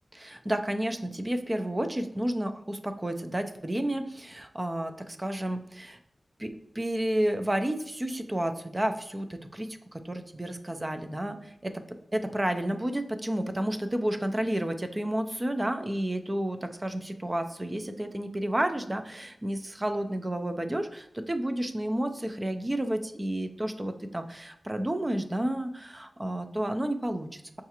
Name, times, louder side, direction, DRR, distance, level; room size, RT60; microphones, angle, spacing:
voice 1, 0.1-6.0 6.4-11.8 12.1-27.6, right 1 dB, 20° right, 7 dB, 0.3 m, -31 dB
5.5 x 2.4 x 2.8 m, 0.78 s
wide cardioid pair, 110°, 0 cm